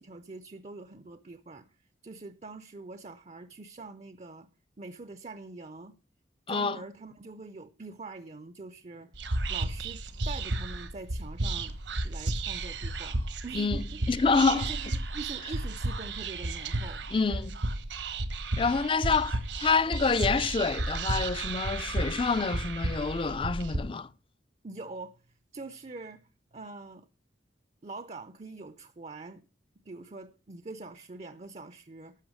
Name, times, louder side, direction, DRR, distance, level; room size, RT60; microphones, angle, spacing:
voice 1, 0.0-1.7 2.0-4.5 4.8-6.0 6.5-9.1 9.5-11.8 12.0-14.2 14.5-17.1 24.6-25.2 25.5-27.1 27.8-29.5 29.9-32.2, right 3 dB, 35° right, 0.5 m, -44 dB
voice 2, 6.5-6.8 13.5-14.6 17.1-17.6 18.6-24.1, left 4 dB, 30° left, 0.4 m, -27 dB
Whispering, 9.1-23.8, right 2 dB, 70° right, 1.1 m, -33 dB
12.5 x 5.7 x 6.3 m
head